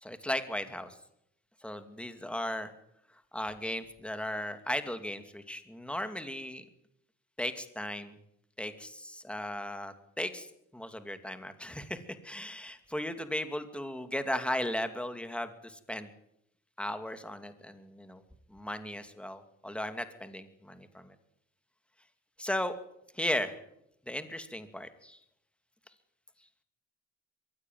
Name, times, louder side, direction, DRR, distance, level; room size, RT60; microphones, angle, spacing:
voice 1, 0.0-0.9 1.6-2.7 3.3-6.6 7.4-8.1 8.6-10.5 10.7-12.0 12.2-16.1 16.8-18.2 18.5-21.1 22.4-22.7 23.2-23.5 24.1-25.2, left 1 dB, 5° left, 9 dB, 2.6 m, -36 dB
22.5 x 16.5 x 9.5 m, 0.78 s
cardioid pair, 90°, 30 cm